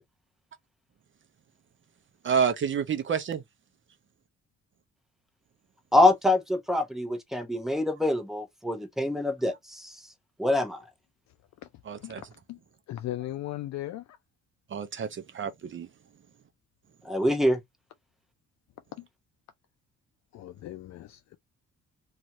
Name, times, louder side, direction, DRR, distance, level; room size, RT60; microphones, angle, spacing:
voice 1, 2.2-3.4 11.8-12.2 14.7-15.9, right 7 dB, 40° right, 0.6 m, -29 dB
voice 2, 5.9-9.9 10.4-10.8 17.1-17.6, left 1 dB, ahead, 0.8 m, -25 dB
voice 3, 12.9-14.0 20.3-21.4, left 14 dB, 65° left, 0.4 m, -37 dB
2.6 x 2.4 x 2.9 m
cardioid pair, 90°, 30 cm